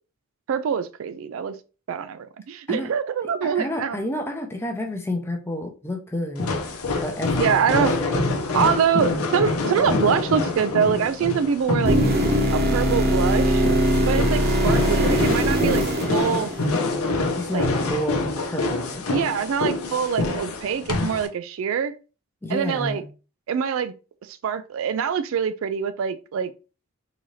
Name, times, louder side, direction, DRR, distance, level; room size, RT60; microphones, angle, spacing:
voice 1, 0.5-1.6 1.9-4.0 7.4-7.9 8.5-12.0 12.5-13.6 14.1-15.8 16.1-16.5 17.5-17.7 19.1-21.9 22.5-23.0 23.5-23.9 24.2-26.5, right 7 dB, 65° right, 0.3 m, -24 dB
voice 2, 3.4-6.5 7.0-8.5 17.4-19.0 22.4-23.1, left 1 dB, 10° left, 0.6 m, -30 dB
sound 1, 6.4-21.3, left 3 dB, 80° left, 0.7 m, -26 dB
sound 2, 11.8-16.9 20.9-21.0, equal, 45° right, 0.9 m, -21 dB
3.8 x 2.7 x 3.1 m
head